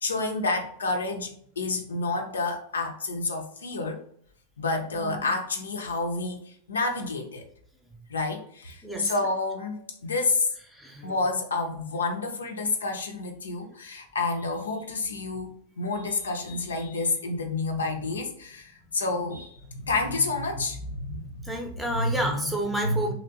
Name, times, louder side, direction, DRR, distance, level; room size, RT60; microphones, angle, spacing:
voice 1, 0.0-4.0 4.6-7.4 8.1-10.5 11.0-21.5 21.9-22.4 22.8-23.1, left 3 dB, 70° left, 4 dB, 0.5 m, -29 dB
voice 2, 4.9-5.3 8.8-9.1 10.7-11.2 21.4-23.1, right 1 dB, 5° right, 1 dB, 0.7 m, -30 dB
3.0 x 2.8 x 2.6 m, 0.62 s
figure-of-eight pair, 90°, 0 cm